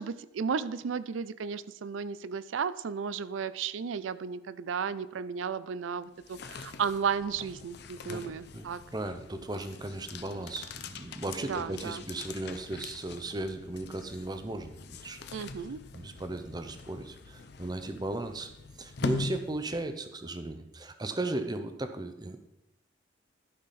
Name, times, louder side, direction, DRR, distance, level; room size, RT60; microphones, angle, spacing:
voice 1, 0.0-8.8 11.5-12.0 15.3-15.8, right 6 dB, 90° right, 16 dB, 0.4 m, -34 dB
sound 1, 6.0-20.1, left 3 dB, 60° left, 0.6 m, -42 dB
voice 2, 8.5-15.2 15.9-18.5 18.8-22.4, right 2 dB, 20° right, 8 dB, 0.7 m, -36 dB
12.0 x 5.6 x 4.2 m, 0.92 s
head